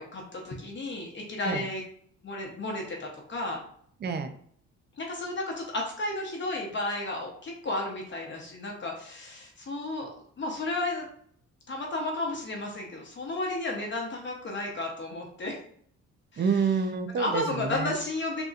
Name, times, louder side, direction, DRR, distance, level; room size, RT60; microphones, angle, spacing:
voice 1, 0.0-1.8 2.2-3.6 5.0-10.1 10.4-11.1 11.7-15.6 16.3-16.4 17.1-18.4, left 2 dB, 40° left, -1 dB, 0.8 m, -33 dB
voice 2, 4.0-4.3 16.4-17.9, right 5 dB, 35° right, 9 dB, 0.5 m, -28 dB
3.9 x 2.7 x 2.4 m, 0.62 s
cardioid pair, 90°, 30 cm